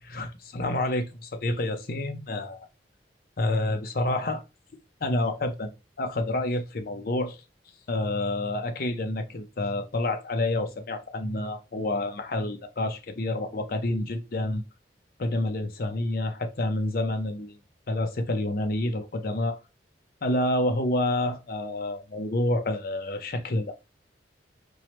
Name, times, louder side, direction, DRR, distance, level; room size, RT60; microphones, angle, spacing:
voice 1, 0.0-2.7 3.4-4.4 5.0-7.4 7.9-14.6 15.2-17.6 17.9-19.6 20.2-23.7, left 1 dB, 55° left, 0.6 m, -28 dB
4.4 x 2.1 x 3.1 m
head